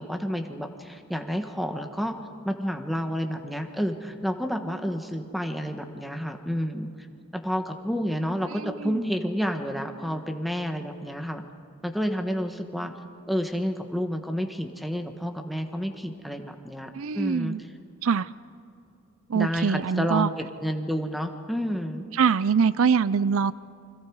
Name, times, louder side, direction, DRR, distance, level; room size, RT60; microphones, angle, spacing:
voice 1, 0.0-2.2 2.4-7.1 7.3-11.4 11.8-12.9 13.3-17.5 19.3-22.0, equal, ahead, 5 dB, 1.3 m, -30 dB
voice 2, 8.5-9.0 16.9-17.6 18.0-18.3 19.3-20.3 22.2-23.5, right 6 dB, 70° right, 18 dB, 0.5 m, -24 dB
30.0 x 25.5 x 4.8 m, 2.5 s
head